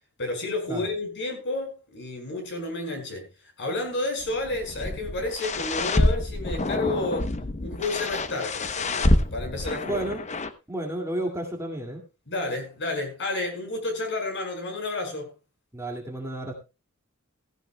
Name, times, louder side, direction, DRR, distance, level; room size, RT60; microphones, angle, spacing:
voice 1, 0.2-3.3 3.6-7.3 7.6-10.0 12.3-15.3, left 2 dB, 55° left, 5.2 m, -31 dB
sound 1, 4.2-10.5, left 2 dB, 30° left, 0.8 m, -27 dB
voice 2, 9.8-10.2 10.7-12.0 15.7-16.5, right 1 dB, 15° right, 2.2 m, -31 dB
16.0 x 15.0 x 2.3 m
head